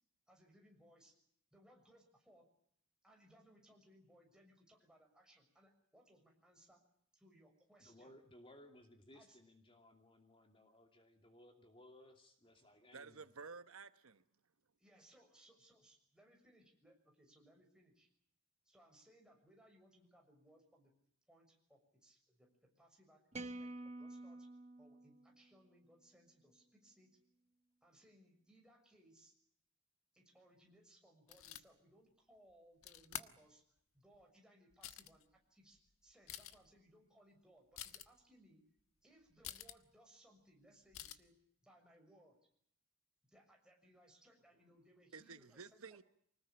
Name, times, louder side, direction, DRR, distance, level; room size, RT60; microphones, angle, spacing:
voice 1, 0.3-1.1 1.5-2.4 3.0-6.8 7.1-8.1 9.1-9.4 14.8-18.1 18.6-20.9 21.3-24.5 24.8-27.2 27.8-29.3 30.1-33.6 33.9-38.6 39.0-41.3 41.6-42.4 43.3-45.8, right 1 dB, 5° right, 6.6 m, -67 dB
voice 2, 7.8-13.2, left 1 dB, 25° left, 2.6 m, -62 dB
voice 3, 12.9-14.2 45.1-46.0, right 4 dB, 75° right, 1.1 m, -53 dB
sound 1, 23.3-25.7, right 2 dB, 30° right, 1.6 m, -49 dB
sound 2, 31.3-31.6 32.8-33.3 34.1-34.2 34.7-35.2 35.8-35.9 36.1-36.7 37.8-38.1 39.4-39.8 40.9-41.2, left 11 dB, 75° left, 1.4 m, -48 dB
25.0 x 19.5 x 8.7 m
head